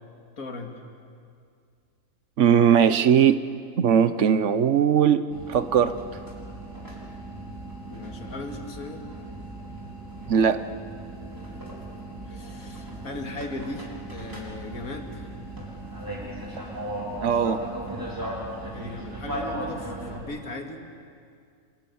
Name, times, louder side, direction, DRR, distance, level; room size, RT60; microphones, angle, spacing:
voice 1, 0.4-0.7 7.9-9.1 12.3-15.3 18.6-20.8, left 2 dB, 85° left, 4 dB, 2.6 m, -37 dB
voice 2, 2.4-3.4 3.8-5.9 10.3-10.6 17.2-17.6, right 8 dB, 65° right, 13 dB, 1.1 m, -19 dB
sound 1, 5.3-20.2, right 1 dB, 15° right, 4.7 m, -37 dB
29.5 x 23.5 x 7.1 m, 2.2 s
omnidirectional pair, 1.4 m